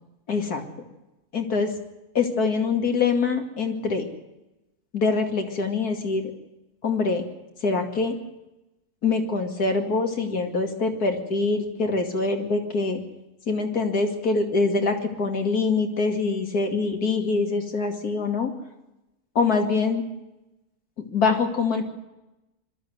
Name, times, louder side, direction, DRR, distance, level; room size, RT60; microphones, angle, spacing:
voice 1, 0.3-0.6 1.3-1.7 2.1-4.1 4.9-6.3 6.8-7.2 7.6-8.2 9.0-13.0 13.5-18.5 19.3-20.0 21.0-21.8, left 4 dB, 80° left, 4 dB, 2.9 m, -24 dB
21.5 x 13.5 x 9.4 m, 0.97 s
omnidirectional pair, 1.6 m